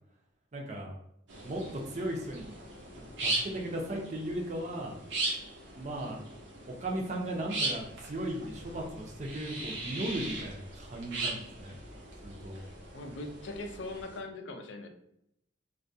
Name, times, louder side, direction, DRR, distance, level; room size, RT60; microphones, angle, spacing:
voice 1, 0.5-1.0 1.4-1.6 1.9-2.6 3.2-4.9 5.8-6.2 6.7-11.8 12.2-12.6, right 1 dB, 40° right, 1 dB, 0.5 m, -36 dB
sound 1, 1.3-14.2, right 2 dB, 90° right, 0.7 m, -39 dB
voice 2, 12.9-14.9, left 2 dB, 75° left, 5 dB, 0.4 m, -40 dB
2.3 x 2.1 x 2.6 m, 0.76 s
head